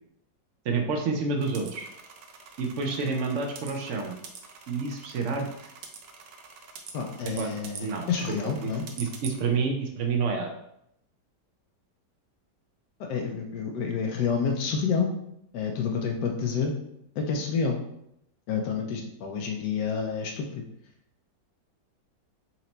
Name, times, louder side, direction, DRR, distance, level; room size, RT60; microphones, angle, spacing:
voice 1, 0.6-1.9 2.6-4.2 4.7-5.5 7.4-7.5 7.8-8.7 9.0-10.5, right 4 dB, 65° right, 3 dB, 0.7 m, -29 dB
sound 1, 1.4-9.4, right 6 dB, 90° right, 1.3 m, -45 dB
voice 2, 6.9-8.8 13.0-15.1 15.5-16.7 17.2-17.8 18.5-20.6, left 6 dB, 85° left, 2 dB, 1.2 m, -29 dB
4.3 x 2.9 x 3.9 m, 0.78 s
omnidirectional pair, 1.8 m